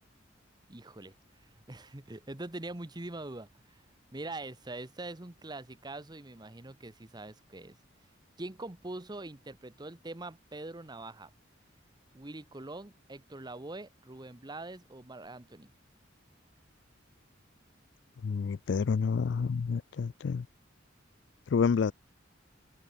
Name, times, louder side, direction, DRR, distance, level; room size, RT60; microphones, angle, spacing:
voice 1, 0.7-1.1 1.4-3.8 4.1-7.8 8.4-11.3 12.1-15.7, right 2 dB, 20° right, 1.1 m, -43 dB
voice 2, 18.2-20.5 21.5-21.9, left 5 dB, 65° left, 0.4 m, -29 dB
open air
head